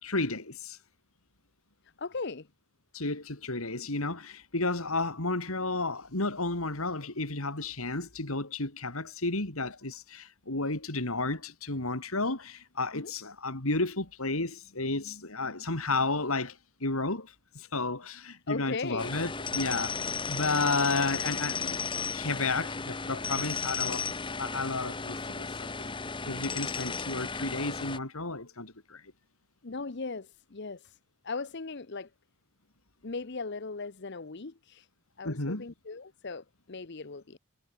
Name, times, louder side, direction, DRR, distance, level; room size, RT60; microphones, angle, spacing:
voice 1, 0.0-0.8 2.9-21.8 22.1-25.9 26.2-29.0 35.2-35.7, left 3 dB, 70° left, 3.4 m, -32 dB
voice 2, 2.0-2.5 12.9-13.1 18.5-19.2 29.6-31.0 31.2-32.1 33.0-34.9 35.2-37.4, left 4 dB, 50° left, 0.8 m, -38 dB
sound 1, 19.0-28.0, left 5 dB, 20° left, 1.1 m, -34 dB
head